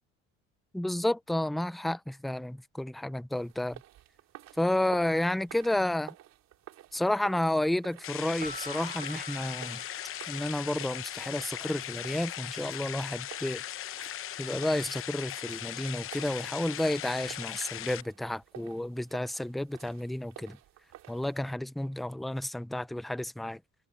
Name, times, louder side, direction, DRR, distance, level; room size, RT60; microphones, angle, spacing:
voice 1, 0.7-3.8 4.6-6.1 6.9-9.8 10.3-13.6 14.4-20.6 21.1-23.6, left 1 dB, ahead, 0.3 m, -31 dB
sound 1, 3.3-21.5, right 13 dB, 55° right, 3.5 m, -53 dB
sound 2, 8.0-18.0, left 12 dB, 45° left, 0.8 m, -39 dB
sound 3, 8.4-11.2, right 3 dB, 20° right, 1.3 m, -46 dB
cardioid pair, 140°, 31 cm